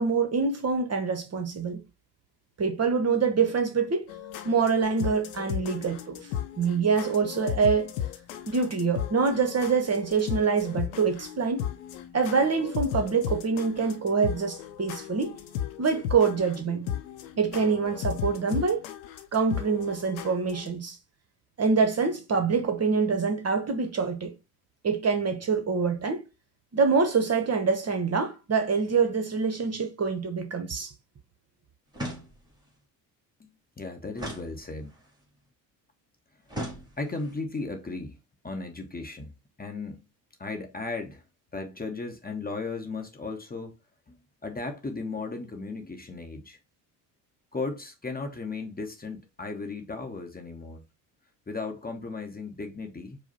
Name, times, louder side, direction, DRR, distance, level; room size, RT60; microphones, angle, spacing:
voice 1, 0.0-1.8 2.6-4.1 4.4-6.2 6.6-7.9 8.5-11.6 12.1-15.4 15.8-16.9 17.4-18.8 19.3-21.0 21.6-24.3 24.8-26.2 26.7-30.9, right 5 dB, 30° right, 0.9 m, -25 dB
sound 1, 4.1-20.7, left 10 dB, 85° left, 0.6 m, -35 dB
sound 2, 31.9-32.7 34.2-35.1 36.5-37.4, right 1 dB, 10° right, 1.7 m, -38 dB
voice 2, 33.8-34.9 37.0-38.2 38.4-39.3 39.6-40.0 40.4-41.2 41.5-43.8 44.1-46.6 47.5-50.8 51.5-53.2, left 3 dB, 20° left, 0.9 m, -36 dB
4.7 x 2.2 x 4.1 m
hypercardioid pair, 60°, 49 cm